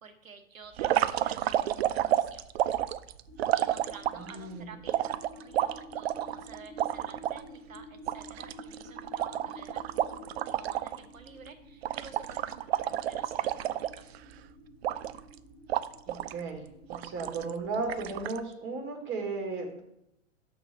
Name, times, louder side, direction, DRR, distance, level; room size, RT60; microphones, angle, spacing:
voice 1, 0.0-2.4 3.5-14.0, right 5 dB, 80° right, 7 dB, 1.1 m, -51 dB
sound 1, 0.8-4.4 4.9-7.4 7.8-7.9 8.1-11.0 11.3-11.5 11.8-14.3 14.8-15.3 15.7-16.4 16.9-17.5 17.9-18.4, right 12 dB, 55° right, 0.4 m, -30 dB
sound 2, 3.3-18.3, left 1 dB, 25° left, 1.1 m, -51 dB
voice 2, 4.1-4.7 16.1-16.6 16.9-19.8, right 4 dB, 30° right, 3 dB, 1.7 m, -35 dB
6.1 x 4.0 x 6.3 m, 0.81 s
figure-of-eight pair, 105°, 40 cm